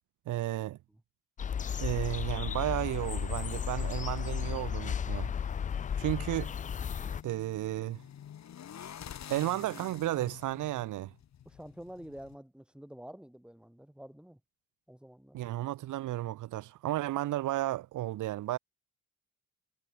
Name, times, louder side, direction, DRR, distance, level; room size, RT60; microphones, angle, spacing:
voice 1, 0.3-0.8 1.8-5.3 6.0-6.5 7.2-8.0 9.3-11.1 15.3-18.6, right 15 dB, 80° right, 1.4 m, -33 dB
sound 1, 1.4-7.2, left 7 dB, 25° left, 0.4 m, -34 dB
sound 2, 5.1-12.4, left 9 dB, 65° left, 6.8 m, -49 dB
voice 2, 11.5-14.4 14.9-15.4, equal, 5° right, 5.6 m, -48 dB
cardioid pair, 90°, 30 cm